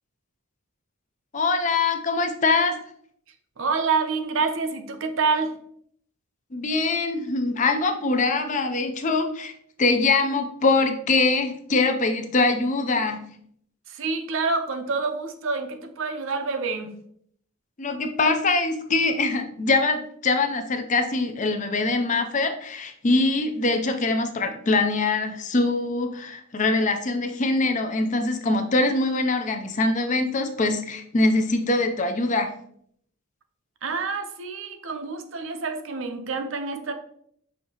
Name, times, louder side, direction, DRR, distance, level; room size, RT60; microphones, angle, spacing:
voice 1, 1.3-2.7 6.5-9.5 9.8-13.2 17.8-32.5, left 3 dB, 35° left, 6 dB, 0.5 m, -23 dB
voice 2, 3.6-5.5 13.9-16.9 33.8-36.9, right 4 dB, 65° right, 6 dB, 0.6 m, -27 dB
6.3 x 2.7 x 2.8 m, 0.65 s
head